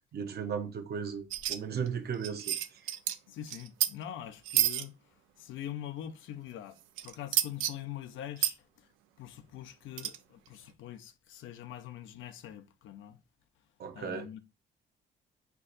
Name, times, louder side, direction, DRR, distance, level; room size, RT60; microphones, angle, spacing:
voice 1, 0.1-2.6 13.8-14.3, right 7 dB, 55° right, 0.8 m, -36 dB
sound 1, 1.3-1.6 1.9-2.0 2.1-3.2 3.5-3.9 4.5-4.8 7.0-7.7 8.4-8.5 10.0-10.2, right 13 dB, 90° right, 0.4 m, -29 dB
voice 2, 3.3-8.9 9.2-13.2 13.9-14.4, left 11 dB, 80° left, 0.5 m, -44 dB
4.5 x 2.5 x 3.9 m
cardioid pair, 90°, 20 cm